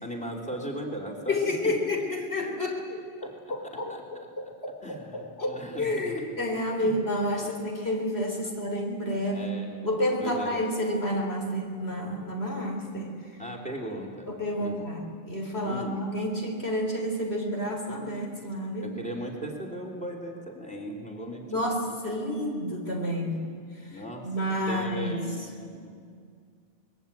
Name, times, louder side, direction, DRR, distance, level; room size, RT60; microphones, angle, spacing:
voice 1, 0.0-1.7 3.2-3.3 3.9-4.0 4.8-6.1 6.8-7.0 7.3-7.5 9.3-9.9 10.2-10.6 13.4-14.8 15.6-16.0 18.8-21.9 22.9-23.1 23.9-24.3 24.7-25.9, right 1 dB, 5° left, 0 dB, 3.4 m, -38 dB
voice 2, 1.3-9.5 9.8-13.4 14.3-18.9 21.5-23.4 23.8-25.2, left 1 dB, 80° left, 1 dB, 4.0 m, -30 dB
24.5 x 21.0 x 9.0 m, 2.1 s
omnidirectional pair, 1.1 m